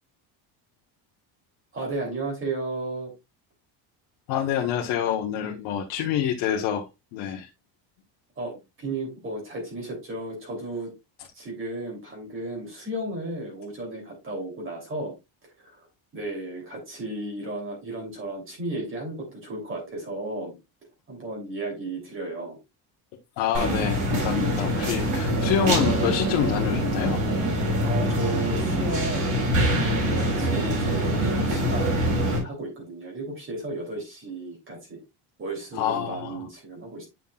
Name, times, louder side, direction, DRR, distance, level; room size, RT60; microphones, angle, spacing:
voice 1, 1.7-3.1 5.4-5.6 8.4-10.9 11.4-15.1 15.6-15.9 16.1-20.5 21.1-22.6 27.8-29.4 30.1-35.0 35.4-37.1, right 2 dB, 30° right, 2.9 m, -34 dB
voice 2, 4.3-7.5 23.4-27.2 35.7-36.4, left 9 dB, 90° left, 1.1 m, -27 dB
sound 1, 23.5-32.4, right 1 dB, 45° right, 4.1 m, -24 dB
9.2 x 5.6 x 2.3 m
cardioid pair, 180°, 44 cm